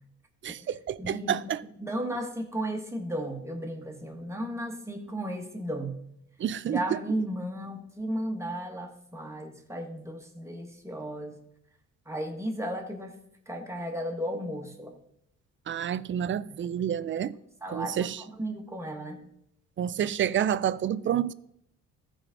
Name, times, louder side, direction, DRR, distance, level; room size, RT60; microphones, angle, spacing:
voice 1, 0.4-1.6 6.4-7.0 15.7-17.4 17.7-18.2 19.8-21.3, right 9 dB, 40° right, 0.4 m, -29 dB
voice 2, 1.0-1.4 1.8-6.0 6.7-11.4 12.0-13.1 13.5-15.0 16.6-16.7 17.6-19.2, right 1 dB, 10° right, 1.7 m, -34 dB
14.5 x 5.0 x 3.8 m
cardioid pair, 90°, 30 cm